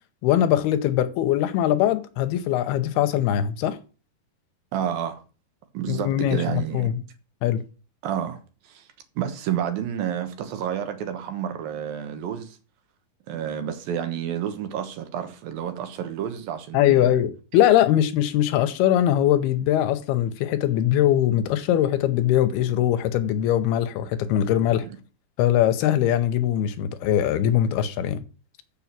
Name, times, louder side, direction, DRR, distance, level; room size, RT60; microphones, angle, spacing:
voice 1, 0.2-3.8 5.9-7.0 7.4-7.6 16.7-24.9 25.4-28.2, left 11 dB, 90° left, 2.8 m, -21 dB
voice 2, 4.7-5.2 5.7-6.9 8.0-8.4 8.6-8.9 9.2-12.6 13.3-17.1 24.8-25.0, right 9 dB, 70° right, 2.9 m, -30 dB
7.0 x 7.0 x 7.4 m
omnidirectional pair, 4.5 m